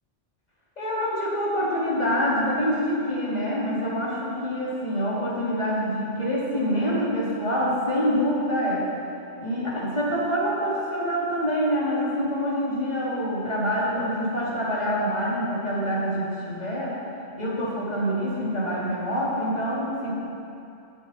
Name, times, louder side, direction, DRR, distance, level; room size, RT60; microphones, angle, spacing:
voice 1, 0.8-8.9 9.4-17.0 17.4-20.1, equal, 35° left, -7 dB, 2.7 m, -26 dB
16.0 x 7.9 x 4.2 m, 2.7 s
omnidirectional pair, 1.2 m